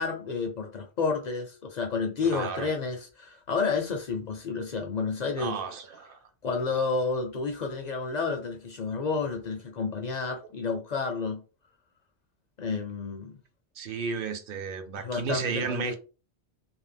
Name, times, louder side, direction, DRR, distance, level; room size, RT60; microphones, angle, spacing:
voice 1, 0.0-5.6 6.4-11.4 12.6-13.4 15.0-16.0, left 4 dB, 55° left, 0.5 m, -30 dB
voice 2, 2.3-2.7 5.4-6.2 13.8-16.0, right 5 dB, 60° right, 0.7 m, -33 dB
2.6 x 2.1 x 3.3 m
omnidirectional pair, 1.1 m